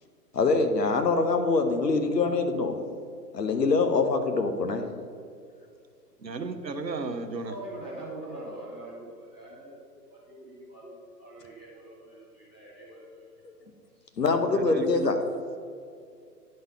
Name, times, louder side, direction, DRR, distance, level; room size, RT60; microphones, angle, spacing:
voice 1, 0.3-2.8 3.3-4.8 13.4-13.5 14.2-15.2, left 3 dB, 75° left, 6 dB, 1.1 m, -24 dB
voice 2, 6.2-7.5 14.5-15.1, right 2 dB, 90° right, 7 dB, 0.9 m, -34 dB
voice 3, 7.4-9.8 10.1-13.3 14.0-14.1, right 1 dB, 10° left, -8 dB, 0.4 m, -43 dB
10.5 x 4.3 x 5.5 m, 2.3 s
figure-of-eight pair, 125°, 49 cm